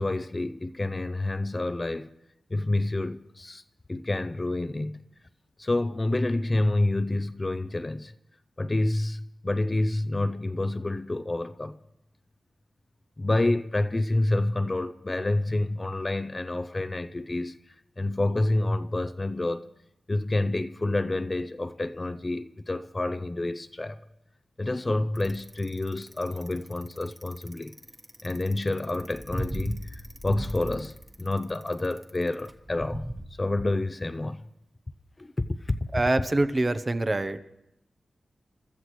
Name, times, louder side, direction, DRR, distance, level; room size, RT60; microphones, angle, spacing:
voice 1, 0.0-2.1 2.5-3.6 3.9-5.0 5.6-8.1 8.6-11.8 13.2-17.6 18.0-19.7 20.1-24.0 24.6-27.7 28.2-33.1 33.4-34.4 35.2-35.9, left 2 dB, 25° left, 0.6 m, -28 dB
Bicycle, 25.1-33.2, right 1 dB, 5° right, 1.3 m, -37 dB
voice 2, 35.9-37.4, right 2 dB, 30° right, 0.8 m, -25 dB
29.5 x 13.5 x 3.2 m
wide cardioid pair, 85°, 0 cm